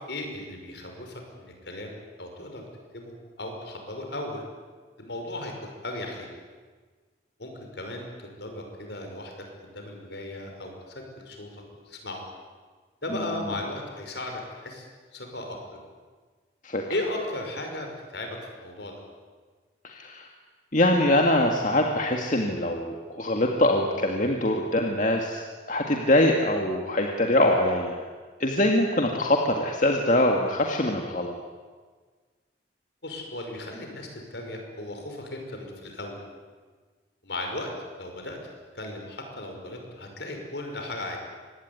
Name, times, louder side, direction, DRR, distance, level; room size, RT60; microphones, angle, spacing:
voice 1, 0.1-2.7 2.9-4.4 5.0-6.3 7.4-12.2 13.0-15.8 16.9-19.0 33.0-36.2 37.2-37.7 38.0-38.4 38.7-41.2, left 1 dB, 70° left, 3 dB, 5.8 m, -36 dB
voice 2, 19.8-20.3 20.7-28.0 28.4-31.3, left 1 dB, 45° left, 1 dB, 2.1 m, -23 dB
25.0 x 20.0 x 9.8 m, 1.5 s
head